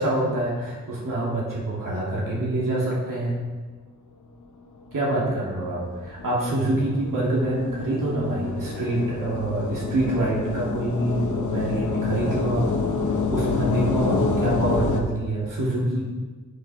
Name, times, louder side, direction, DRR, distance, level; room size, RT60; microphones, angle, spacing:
voice 1, 0.0-3.4 4.9-12.7 13.3-16.1, right 1 dB, 85° right, -5 dB, 2.2 m, -26 dB
sound 1, 4.9-15.0, left 4 dB, 65° left, 1.0 m, -27 dB
9.4 x 4.4 x 5.3 m, 1.4 s
wide cardioid pair, 105°, 31 cm